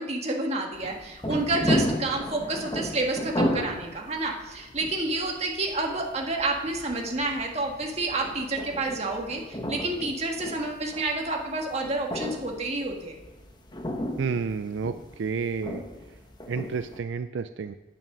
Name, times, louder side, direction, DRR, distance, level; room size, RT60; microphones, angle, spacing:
voice 1, 0.0-13.1, right 2 dB, 35° right, 1 dB, 1.7 m, -29 dB
sound 1, 0.7-17.0, equal, 25° left, 1.1 m, -34 dB
voice 2, 14.2-14.9 15.2-15.8 16.5-17.7, right 5 dB, 75° right, 10 dB, 0.4 m, -30 dB
9.1 x 9.1 x 6.1 m, 1.2 s
head